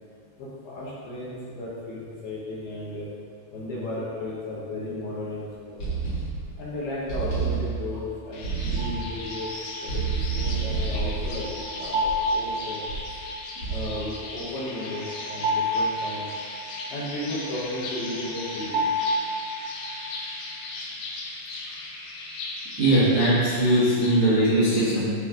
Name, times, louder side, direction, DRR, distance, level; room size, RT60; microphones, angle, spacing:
voice 1, 0.4-3.1 3.5-5.8 6.6-9.5 9.8-12.9 13.7-16.3 16.9-18.9, left 1 dB, 65° left, -7 dB, 2.8 m, -34 dB
sound 1, 5.8-6.6 7.1-8.0 8.4-9.2 9.9-12.4 12.9-13.2 13.6-14.1, right 5 dB, 40° left, 1.7 m, -29 dB
sound 2, 8.3-24.2, left 2 dB, 85° left, 2.1 m, -38 dB
sound 3, 8.8-20.1, equal, 85° right, 4.2 m, -31 dB
voice 2, 22.8-25.2, right 1 dB, 55° right, -13 dB, 1.5 m, -20 dB
13.0 x 4.5 x 3.8 m, 2.2 s
omnidirectional pair, 5.6 m